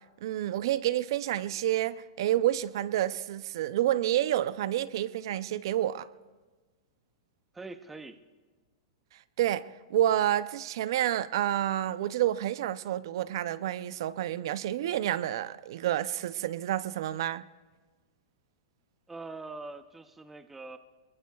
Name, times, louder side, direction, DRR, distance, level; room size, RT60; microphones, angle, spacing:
voice 1, 0.2-6.1 9.4-17.4, right 12 dB, 55° right, 0.5 m, -29 dB
voice 2, 7.5-8.2 19.1-20.8, right 3 dB, 5° right, 0.5 m, -43 dB
28.0 x 21.5 x 2.3 m
supercardioid pair, 170°, 3 cm